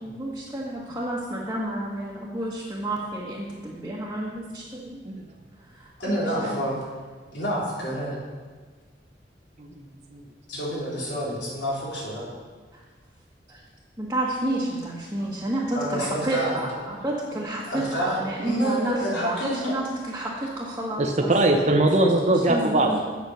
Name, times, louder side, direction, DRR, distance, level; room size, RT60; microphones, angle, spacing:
voice 1, 0.0-5.0 5.8-6.5 13.5-13.6 14.0-21.3 22.5-23.0, right 1 dB, 15° right, -6 dB, 1.4 m, -30 dB
voice 2, 6.0-6.7 7.3-8.2 10.5-12.2 15.7-16.6 17.7-19.8, equal, 80° left, -5 dB, 3.8 m, -28 dB
voice 3, 21.0-23.0, right 2 dB, 40° right, 2 dB, 0.9 m, -21 dB
8.2 x 8.1 x 6.4 m, 1.4 s
head